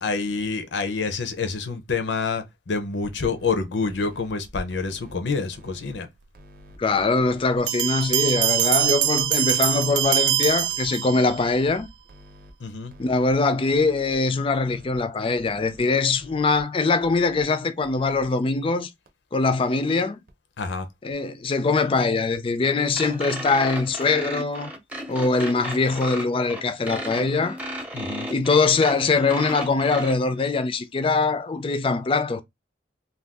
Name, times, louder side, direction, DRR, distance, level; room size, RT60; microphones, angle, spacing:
voice 1, 0.0-6.1 11.1-11.2 12.6-12.9 20.6-20.9 27.9-28.3, left 4 dB, 85° left, 0.6 m, -27 dB
sound 1, 3.1-3.5 3.9-4.3 4.7-5.1 5.5-6.0 6.3-6.8 7.2-7.6 8.0-8.4 8.8-9.2 9.6-10.1 10.5-10.9 11.3-11.7 12.1-12.5 12.9-13.3 13.7-14.2 14.5-15.0 15.4-15.8 16.2-16.6 17.0-17.4 17.8-18.3 18.6-18.7 19.1-19.2 19.5-19.6 19.9-20.0 20.3-20.4 20.7-20.8 21.1-21.2 21.5-21.6 21.9-22.0 22.3-22.4, equal, 55° right, 0.7 m, -49 dB
voice 2, 6.8-11.9 13.0-18.9 19.3-20.2 21.0-24.7 25.1-27.6 28.3-32.4, left 3 dB, 30° left, 0.4 m, -22 dB
sound 2, 7.7-11.4, right 13 dB, 85° right, 0.4 m, -23 dB
sound 3, 22.9-30.1, right 1 dB, 10° right, 0.6 m, -34 dB
2.6 x 2.3 x 3.5 m
head